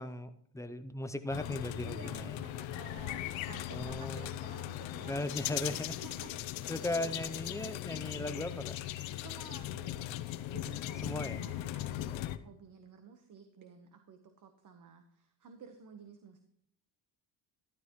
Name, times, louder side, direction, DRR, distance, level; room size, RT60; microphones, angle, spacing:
voice 1, 0.0-2.4 3.7-4.3 5.1-6.0 6.7-8.8 11.0-11.4, left 1 dB, 5° left, 10 dB, 0.4 m, -37 dB
sound 1, 1.3-12.4, left 14 dB, 75° left, 0.7 m, -39 dB
voice 2, 1.8-5.2 5.7-7.3 9.1-10.0 10.5-16.4, right 6 dB, 40° right, 7 dB, 1.1 m, -53 dB
13.0 x 12.5 x 3.0 m, 0.69 s
cardioid pair, 130°, 47 cm